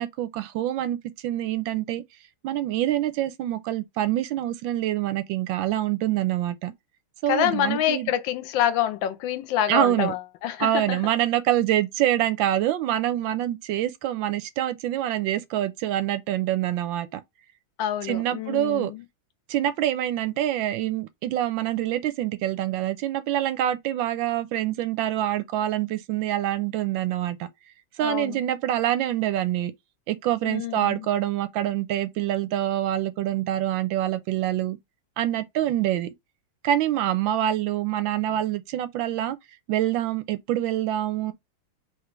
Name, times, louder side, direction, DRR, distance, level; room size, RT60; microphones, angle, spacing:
voice 1, 0.0-2.0 2.4-6.7 7.2-8.1 9.7-10.1 10.6-17.2 18.0-18.9 19.5-27.5 28.0-29.7 30.1-34.8 35.2-36.1 36.6-39.4 39.7-41.3, right 12 dB, 75° right, 1.2 m, -26 dB
voice 2, 7.3-11.0 17.8-19.0 28.0-28.4 30.4-31.1, left 11 dB, 70° left, 1.2 m, -27 dB
3.7 x 3.0 x 3.1 m
omnidirectional pair, 2.4 m